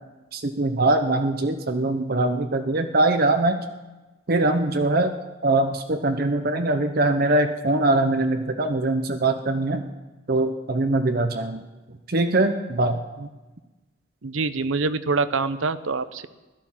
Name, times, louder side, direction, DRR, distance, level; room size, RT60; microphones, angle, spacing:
voice 1, 0.3-3.6 4.3-5.1 5.4-9.8 10.3-11.6 11.9-13.0, right 2 dB, 50° right, 6 dB, 0.8 m, -22 dB
voice 2, 14.2-16.3, right 4 dB, 80° right, 13 dB, 0.8 m, -25 dB
16.0 x 12.0 x 7.4 m, 1.2 s
head